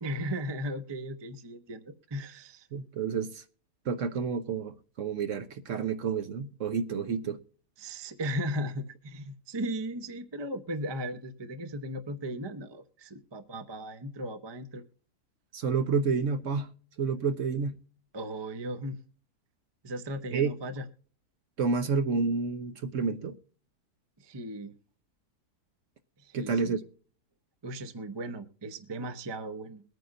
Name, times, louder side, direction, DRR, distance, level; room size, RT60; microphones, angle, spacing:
voice 1, 0.0-2.7 7.8-14.8 18.1-19.0 19.8-20.9 24.2-24.7 26.2-26.8 27.6-29.8, equal, 25° right, 0.6 m, -36 dB
voice 2, 2.7-3.4 3.9-7.4 15.5-16.7 17.0-17.8 20.3-20.5 21.6-23.3 26.3-26.9, right 5 dB, 55° right, 1.1 m, -29 dB
22.5 x 9.2 x 2.6 m
omnidirectional pair, 1.7 m